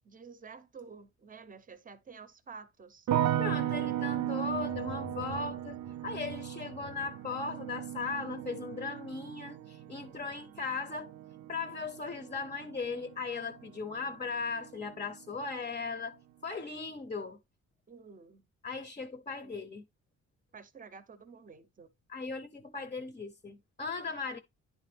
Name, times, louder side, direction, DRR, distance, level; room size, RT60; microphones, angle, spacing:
voice 1, 0.0-3.1 17.9-18.5 19.4-19.6 20.5-21.9, right 5 dB, 25° right, 0.8 m, -50 dB
sound 1, 3.1-14.1 14.4-15.2, right 12 dB, 65° right, 0.5 m, -36 dB
voice 2, 3.4-5.8 6.0-11.1 11.5-17.4 18.6-19.8 22.1-24.4, left 4 dB, 25° left, 0.7 m, -38 dB
10.0 x 3.8 x 3.3 m
cardioid pair, 90°, 30 cm